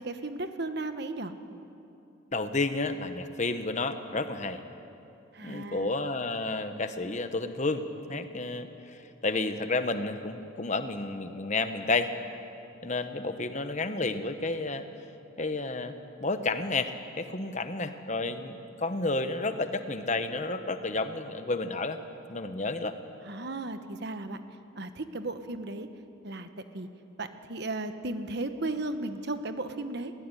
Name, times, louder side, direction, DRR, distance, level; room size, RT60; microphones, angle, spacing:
voice 1, 0.0-1.3 5.3-5.9 23.2-24.4 24.7-25.9 26.2-26.5 26.7-26.9 27.2-30.1, right 2 dB, 55° right, 9 dB, 1.2 m, -35 dB
voice 2, 2.3-4.6 5.4-7.8 8.1-12.1 12.8-14.8 15.4-15.9 16.2-22.0 22.3-22.9, left 3 dB, 35° left, 9 dB, 1.1 m, -31 dB
20.0 x 18.0 x 9.9 m, 2.8 s
head